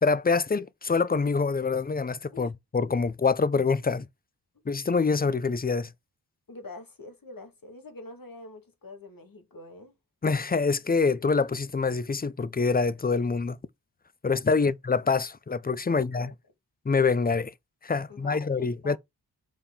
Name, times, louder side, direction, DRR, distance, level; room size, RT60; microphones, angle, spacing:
voice 1, 0.0-4.1 4.7-5.9 10.2-13.6 14.2-16.3 16.9-17.5 17.8-19.0, left 4 dB, 25° left, 0.5 m, -25 dB
voice 2, 6.5-10.0 14.6-14.7 15.9-16.3 18.1-19.0, left 3 dB, 55° left, 1.8 m, -45 dB
7.1 x 4.3 x 3.6 m
wide cardioid pair, 85°, 41 cm